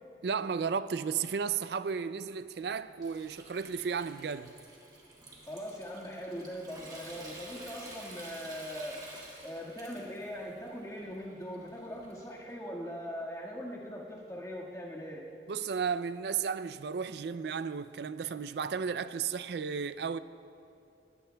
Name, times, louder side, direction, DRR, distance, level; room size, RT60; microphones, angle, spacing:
voice 1, 0.2-4.5 15.5-20.2, right 6 dB, 65° right, 0.4 m, -34 dB
Water tap faucet / Sink (filling or washing) / Trickle dribble, 2.6-12.5, right 2 dB, 25° right, 2.0 m, -51 dB
voice 2, 5.5-9.0 9.4-15.2, equal, 20° left, 1.7 m, -41 dB
20.5 x 17.0 x 2.3 m
head